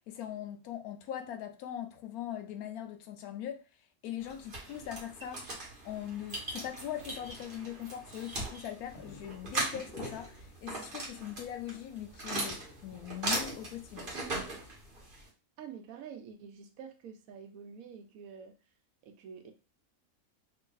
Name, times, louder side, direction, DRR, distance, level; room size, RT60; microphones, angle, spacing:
voice 1, 0.1-3.6 4.0-5.6 5.8-14.1, left 10 dB, 90° left, 1.1 m, -41 dB
sound 1, 4.2-15.3, right 2 dB, 40° right, 1.3 m, -39 dB
sound 2, 8.9-14.7, left 1 dB, 40° left, 1.3 m, -52 dB
voice 2, 15.6-18.6 19.0-19.5, right 7 dB, 75° right, 1.1 m, -47 dB
3.1 x 2.5 x 3.8 m
omnidirectional pair, 1.5 m